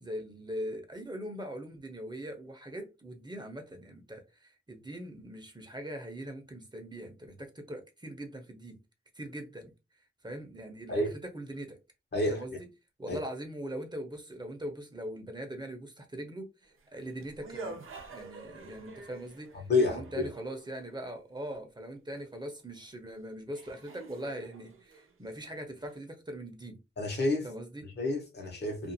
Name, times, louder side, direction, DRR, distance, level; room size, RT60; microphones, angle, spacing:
voice 1, 0.0-8.8 9.1-9.7 10.2-11.8 12.3-12.7 13.0-17.8 18.1-26.8 27.4-27.9, right 1 dB, 20° right, 0.8 m, -41 dB
voice 2, 12.1-12.6 13.1-13.2 19.7-20.3 27.0-27.5 28.0-28.9, left 2 dB, 55° left, 1.0 m, -29 dB
sound 1, 16.7-21.0 22.9-23.0 23.5-26.0, right 3 dB, 85° right, 0.7 m, -47 dB
2.6 x 2.4 x 2.7 m
cardioid pair, 65°, 21 cm